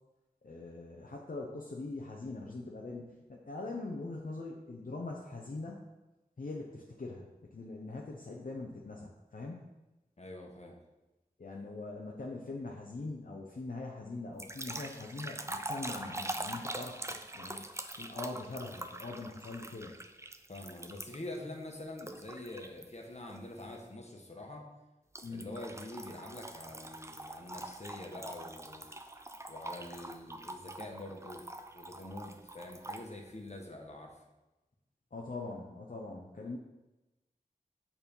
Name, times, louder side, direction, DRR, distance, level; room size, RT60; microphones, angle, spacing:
voice 1, 0.4-5.8 6.4-9.7 11.4-17.0 17.3-17.7 17.9-19.9 25.2-25.5 35.1-36.6, left 3 dB, 70° left, -2 dB, 0.8 m, -42 dB
voice 2, 10.2-10.8 20.5-24.7 25.3-28.9 29.5-31.4 31.7-34.2, left 1 dB, 50° left, 1 dB, 1.3 m, -45 dB
sound 1, 14.4-21.4 22.0-22.8 23.3-23.6 25.1-33.1, right 1 dB, 20° right, 0.5 m, -43 dB
6.9 x 4.3 x 5.4 m, 1.0 s
wide cardioid pair, 60°, 15 cm